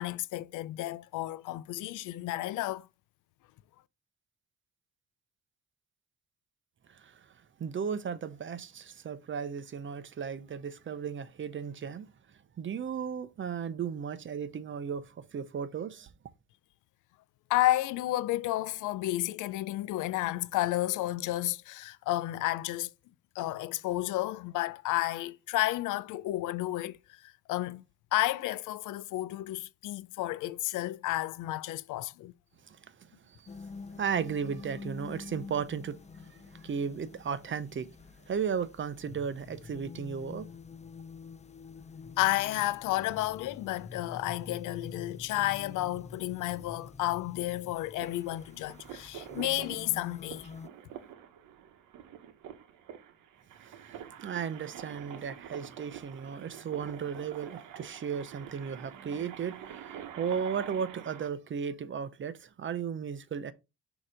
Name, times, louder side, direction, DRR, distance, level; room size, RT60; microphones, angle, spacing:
voice 1, 0.0-2.9 17.5-22.9 23.4-27.0 27.2-27.8 28.1-32.3 42.2-50.5, left 16 dB, 85° left, 0.5 m, -31 dB
voice 2, 6.9-7.3 7.6-12.1 12.6-16.1 32.6-32.8 33.3-33.5 34.0-38.0 38.3-40.5 53.6-53.8 54.2-63.5, right 7 dB, 40° right, 0.7 m, -35 dB
sound 1, 33.5-50.7, left 4 dB, 25° left, 0.5 m, -47 dB
sound 2, 48.0-61.3, right 9 dB, 85° right, 1.0 m, -47 dB
6.5 x 2.9 x 5.0 m
cardioid pair, 90°, 30 cm